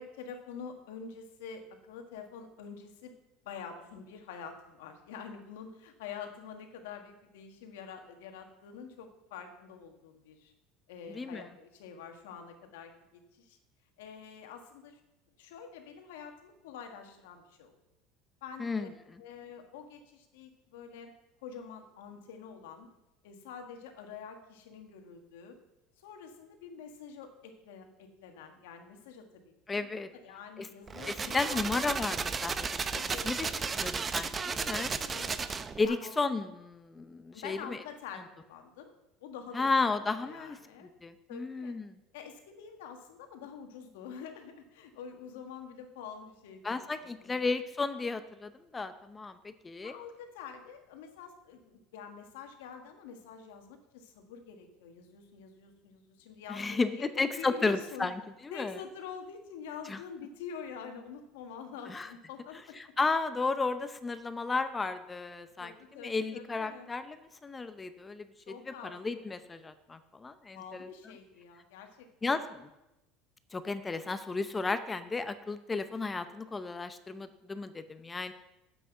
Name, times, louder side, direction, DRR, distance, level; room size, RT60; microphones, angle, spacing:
voice 1, 0.0-3.2 3.4-10.5 10.9-13.6 14.0-15.0 15.4-17.8 18.4-18.9 19.2-21.1 21.4-22.9 23.2-25.6 26.0-29.9 30.1-31.7 32.9-33.9 34.2-35.5 35.8-36.1 37.3-38.9 39.2-39.7 40.2-40.9 41.3-41.7 42.1-47.5 49.8-58.1 58.5-62.8 65.6-66.9 68.5-69.2 70.5-72.4, left 6 dB, 85° left, 5 dB, 1.5 m, -47 dB
voice 2, 11.1-11.5 18.6-18.9 29.7-30.1 30.6-30.7 31.1-32.6 33.2-33.5 33.8-34.9 35.8-37.8 39.5-40.6 41.0-42.0 46.6-50.0 56.5-58.8 59.9-60.0 61.9-62.1 62.8-65.7 66.0-70.9 72.2-72.7 73.5-78.3, left 3 dB, 20° left, 11 dB, 0.6 m, -33 dB
sound 1, 30.9-35.9, right 5 dB, 25° right, 0.6 m, -34 dB
7.9 x 6.1 x 7.9 m, 0.97 s
supercardioid pair, 100°, 0 cm